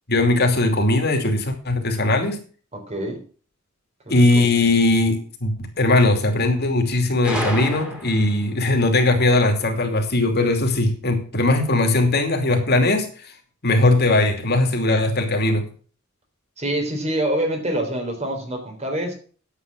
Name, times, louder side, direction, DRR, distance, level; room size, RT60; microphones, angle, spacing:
voice 1, 0.1-2.4 4.1-13.3 13.6-15.6, left 2 dB, 50° left, 2.7 m, -19 dB
voice 2, 2.7-3.2 4.1-4.5 16.6-19.1, right 1 dB, 30° right, 3.6 m, -26 dB
Gunshot gunfire, 7.2-8.5, equal, 5° right, 2.8 m, -29 dB
10.5 x 8.2 x 6.1 m
head